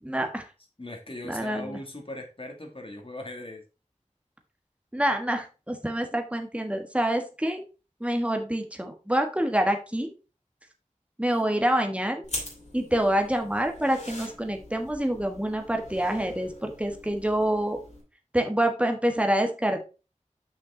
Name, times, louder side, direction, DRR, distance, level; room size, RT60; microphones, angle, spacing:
voice 1, 0.0-0.4 1.2-1.8 4.9-7.6 8.0-10.1 11.2-12.2 12.7-17.8 18.3-19.8, right 1 dB, 10° right, 4 dB, 1.4 m, -26 dB
voice 2, 0.8-3.6, left 2 dB, 45° left, 2 dB, 2.1 m, -39 dB
sound 1, 12.2-18.0, left 1 dB, 60° left, 3.0 m, -42 dB
6.0 x 5.9 x 3.8 m, 0.32 s
wide cardioid pair, 40°, 13 cm